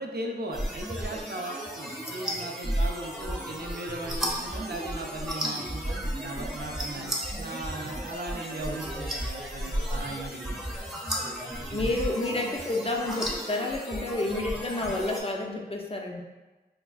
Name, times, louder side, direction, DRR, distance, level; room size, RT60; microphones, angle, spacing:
voice 1, 0.0-10.8 11.6-11.9, right 2 dB, 70° right, 0 dB, 0.5 m, -38 dB
sound 1, 0.5-15.2, equal, ahead, 0.7 m, -33 dB
voice 2, 11.7-16.2, left 2 dB, 35° left, 1 dB, 0.4 m, -30 dB
4.5 x 2.4 x 2.3 m, 1.2 s
wide cardioid pair, 45°, 18 cm